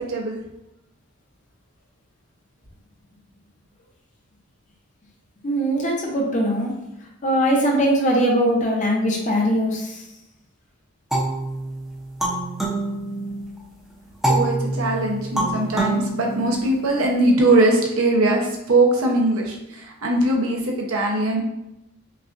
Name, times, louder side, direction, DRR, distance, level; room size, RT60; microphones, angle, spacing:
voice 1, 5.4-6.7 7.2-10.0, equal, 35° left, -1 dB, 0.8 m, -21 dB
sound 1, 11.1-13.6 14.2-17.0, right 1 dB, ahead, 0.7 m, -26 dB
voice 2, 14.3-19.6 20.0-21.4, right 2 dB, 90° right, 0 dB, 0.9 m, -20 dB
5.4 x 2.5 x 2.6 m, 0.88 s
head